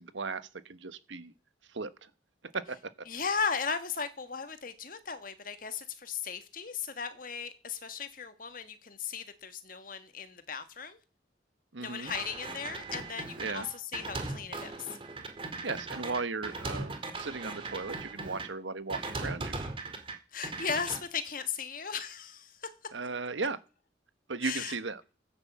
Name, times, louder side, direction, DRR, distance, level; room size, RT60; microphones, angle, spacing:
voice 1, 0.0-1.3 1.7-2.1 2.5-2.8 11.7-12.1 13.4-13.7 15.6-19.6 22.9-23.6 24.3-25.0, right 4 dB, 80° right, 1.2 m, -36 dB
voice 2, 3.1-11.0 11.8-14.9 20.3-22.5 24.4-24.8, left 6 dB, 45° left, 1.5 m, -36 dB
sound 1, 12.1-18.5 18.9-20.1 20.4-21.0, right 3 dB, 30° right, 2.1 m, -38 dB
14.5 x 9.7 x 7.4 m
head